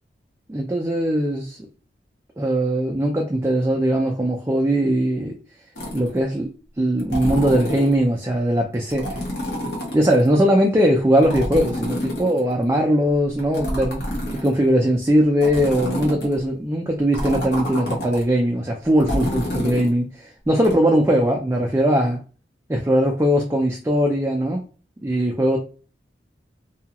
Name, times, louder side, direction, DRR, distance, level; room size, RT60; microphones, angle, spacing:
voice 1, 0.5-1.6 2.4-5.4 5.9-9.2 9.9-14.0 14.3-22.2 22.7-24.6 25.0-25.6, equal, 15° right, 0.3 m, -20 dB
sound 1, 5.8-6.2 7.0-8.0 8.9-10.3 11.2-12.7 13.4-14.7 15.4-16.4 17.1-18.2 19.0-19.9 20.6-20.7, equal, 75° left, 1.1 m, -28 dB
2.7 x 2.3 x 2.8 m
head